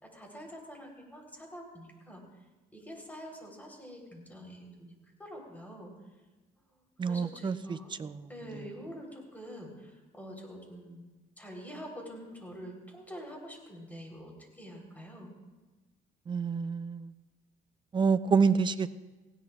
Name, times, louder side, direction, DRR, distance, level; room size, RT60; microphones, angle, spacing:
voice 1, 0.0-2.2 2.7-4.9 5.2-5.9 6.7-7.9 8.3-11.1 11.4-15.3, equal, 10° left, 0 dB, 3.7 m, -46 dB
voice 2, 7.0-8.1 16.3-17.1 17.9-18.9, right 5 dB, 25° right, 13 dB, 0.6 m, -28 dB
18.5 x 16.5 x 2.4 m, 1.2 s
cardioid pair, 110°, 17 cm